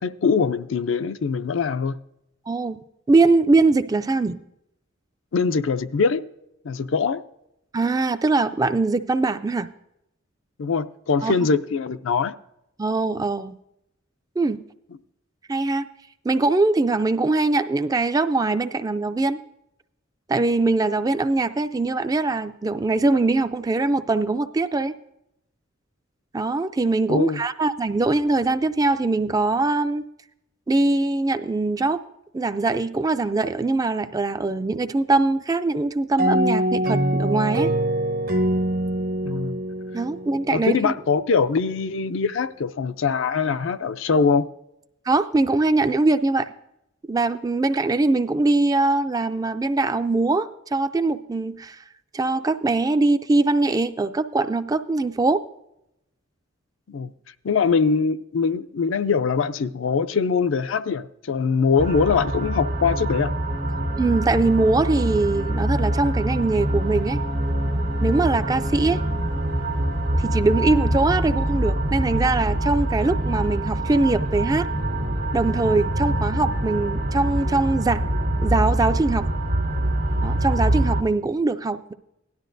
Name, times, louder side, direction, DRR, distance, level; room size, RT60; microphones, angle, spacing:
voice 1, 0.0-2.0 5.3-6.2 6.6-7.2 10.6-12.3 27.1-27.4 39.2-39.6 40.5-44.5 56.9-57.1 57.4-63.3, left 5 dB, 75° left, 0.5 m, -22 dB
voice 2, 2.5-2.8 3.1-4.4 7.7-9.7 11.2-11.3 12.8-13.6 14.4-14.6 15.5-15.9 16.2-19.4 20.3-25.0 26.3-30.0 30.7-32.0 32.3-37.7 39.9-40.9 45.1-46.5 47.1-51.8 52.1-55.4 64.0-67.2 68.0-69.0 70.2-74.7 75.3-78.1 78.4-79.3 80.2-81.9, right 3 dB, 20° right, 0.3 m, -22 dB
sound 1, 36.2-40.8, right 1 dB, 45° right, 0.7 m, -24 dB
sound 2, 61.8-81.0, right 1 dB, 75° right, 1.5 m, -24 dB
17.0 x 12.0 x 2.6 m
head